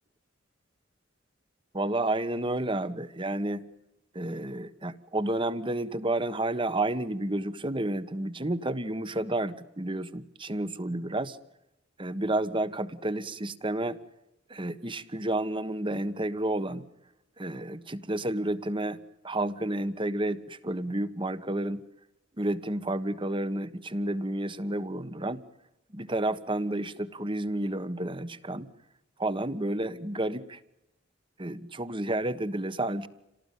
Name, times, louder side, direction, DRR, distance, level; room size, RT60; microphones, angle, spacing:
voice 1, 1.7-3.6 4.1-11.4 12.0-14.0 14.5-16.9 17.4-19.0 19.2-21.8 22.4-25.4 25.9-28.7 29.2-30.6 31.4-33.1, right 1 dB, 25° right, 14 dB, 1.4 m, -31 dB
28.5 x 18.5 x 9.3 m, 0.90 s
head